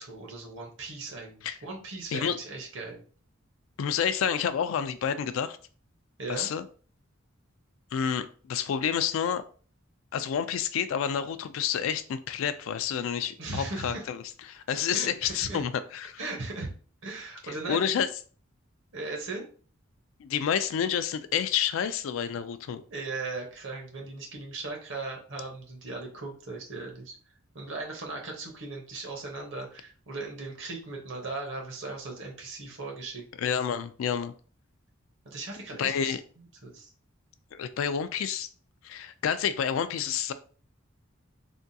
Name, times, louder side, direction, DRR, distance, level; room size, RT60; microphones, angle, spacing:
voice 1, 0.0-3.0 6.2-6.5 13.4-14.0 14.9-15.6 16.2-16.7 17.0-17.8 18.9-19.4 22.9-27.2 27.5-33.2 35.2-36.9, right 3 dB, 65° right, 0 dB, 1.0 m, -38 dB
voice 2, 3.8-5.6 6.3-6.6 7.9-9.4 10.1-14.2 14.5-16.2 17.7-18.1 20.2-22.8 33.4-34.3 35.8-36.2 37.5-38.5 38.8-40.3, left 8 dB, 75° left, 12 dB, 0.3 m, -29 dB
3.5 x 2.2 x 2.7 m, 0.41 s
head